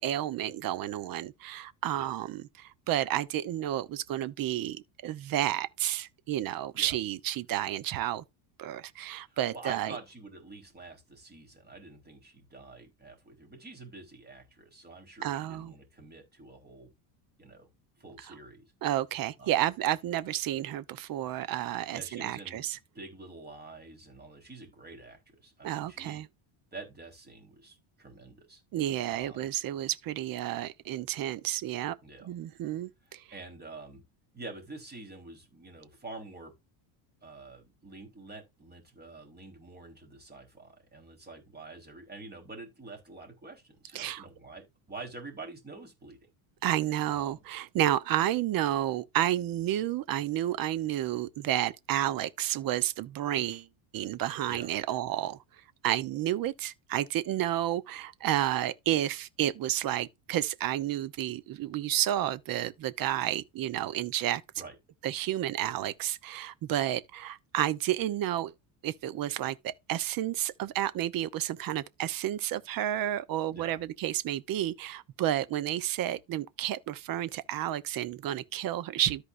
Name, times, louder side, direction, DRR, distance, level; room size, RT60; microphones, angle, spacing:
voice 1, 0.0-8.2 8.6-9.9 15.2-15.7 18.8-22.8 25.6-26.3 28.7-32.0 32.3-33.2 43.9-44.3 46.6-53.7 53.9-55.4 55.8-64.4 65.0-68.5 68.8-79.3, right 12 dB, 45° right, 0.9 m, -31 dB
voice 2, 9.2-16.9 17.4-17.7 18.0-18.6 19.4-19.5 21.9-22.7 22.9-26.2 26.7-28.6 29.1-29.5 32.0-32.3 33.3-34.0 34.3-36.5 37.2-46.3 47.1-47.4 54.5-54.7 64.6-64.7 73.5-73.8, right 3 dB, 20° right, 4.1 m, -47 dB
13.5 x 4.9 x 2.6 m
cardioid pair, 125°, 49 cm